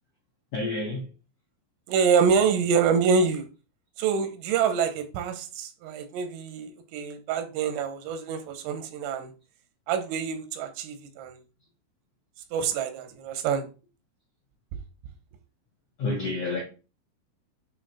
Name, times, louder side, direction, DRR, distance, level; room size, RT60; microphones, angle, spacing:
voice 1, 0.5-1.1 16.0-16.6, left 2 dB, 80° left, 1.4 m, -29 dB
voice 2, 1.9-3.5 4.0-9.3 9.9-11.4 12.5-13.7, right 6 dB, 85° right, 3.6 m, -26 dB
8.8 x 3.2 x 4.1 m
omnidirectional pair, 5.7 m